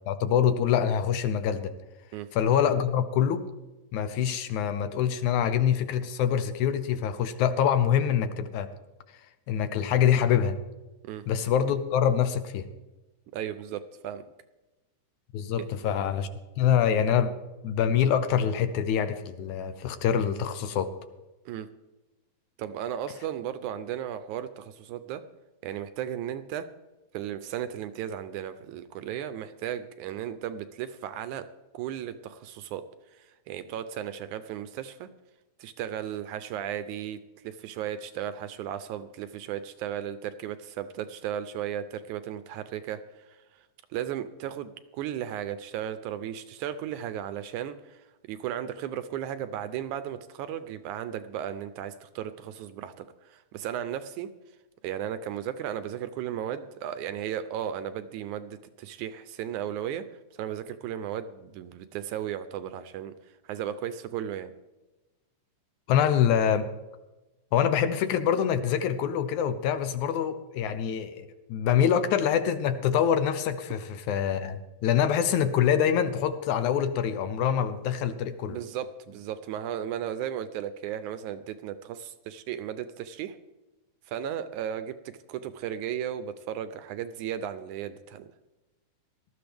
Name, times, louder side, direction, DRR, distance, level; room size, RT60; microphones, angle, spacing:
voice 1, 0.1-1.7 2.3-3.5 3.9-8.7 9.5-10.6 11.3-12.7 15.3-16.3 16.6-17.3 17.6-20.9 65.9-66.7 67.5-78.6, left 8 dB, 75° left, 10 dB, 2.0 m, -25 dB
voice 2, 13.3-14.2 21.5-21.7 22.6-25.2 25.6-26.7 27.1-31.5 31.7-32.8 33.1-35.1 35.6-54.3 54.8-60.1 60.3-63.1 63.4-64.5 78.5-83.4 84.1-88.3, right 10 dB, 80° right, 12 dB, 1.9 m, -35 dB
19.0 x 13.0 x 3.4 m, 1.1 s
omnidirectional pair, 3.7 m